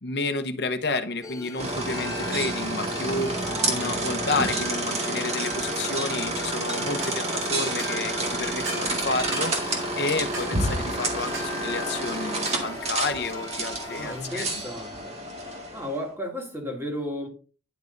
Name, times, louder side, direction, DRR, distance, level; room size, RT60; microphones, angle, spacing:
voice 1, 0.0-14.5, left 3 dB, 60° left, 0.9 m, -31 dB
sound 1, 1.2-14.2, left 2 dB, 20° left, 0.6 m, -39 dB
sound 2, 1.6-16.0, right 2 dB, 35° right, 1.9 m, -29 dB
sound 3, 7.0-7.2 7.8-8.0 8.6-8.9 9.3-9.5 10.3-10.5 11.3-11.5 12.4-12.7, right 3 dB, 70° right, 3.3 m, -36 dB
voice 2, 13.9-15.2 15.7-17.3, left 1 dB, 10° right, 2.0 m, -34 dB
10.5 x 5.4 x 3.9 m
head